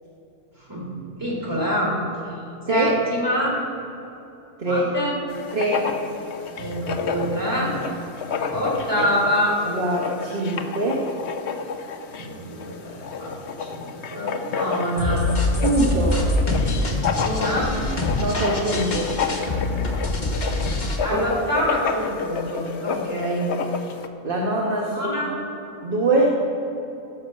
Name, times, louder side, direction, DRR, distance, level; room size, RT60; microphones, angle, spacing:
voice 1, 1.2-1.9 2.7-3.6 4.7-5.2 6.6-7.8 8.5-9.5 12.1-15.3 17.2-17.8 21.0-23.5 24.9-25.3, equal, 15° right, -4 dB, 2.9 m, -26 dB
Writing, 5.3-24.1, left 5 dB, 60° left, 0.9 m, -31 dB
voice 2, 5.5-5.9 8.9-9.1 9.7-11.1 15.6-16.2 18.2-19.7 21.1-21.3 24.2-25.3 25.8-26.4, right 1 dB, 45° right, -2 dB, 1.3 m, -23 dB
sound 1, 15.0-21.0, left 2 dB, 35° left, 1.3 m, -24 dB
15.5 x 6.4 x 6.5 m, 2.9 s
omnidirectional pair, 1.4 m